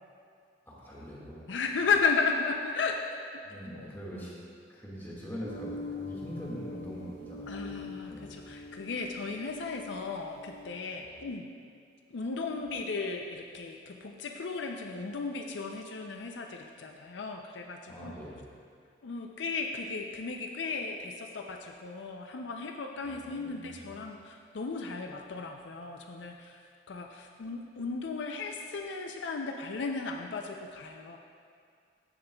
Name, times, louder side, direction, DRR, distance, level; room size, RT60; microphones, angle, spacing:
voice 1, 0.6-1.5 3.4-4.3 4.7-8.4 11.0-11.1 17.9-18.5 23.0-23.8, equal, 10° left, -7 dB, 1.8 m, -43 dB
voice 2, 1.5-3.0 3.7-3.9 7.5-11.5 12.1-18.2 19.0-26.6 26.9-31.2, left 4 dB, 75° left, 3 dB, 0.5 m, -35 dB
sound 1, 5.4-10.6, left 3 dB, 60° right, 1.2 m, -43 dB
13.5 x 6.7 x 2.3 m, 2.2 s
head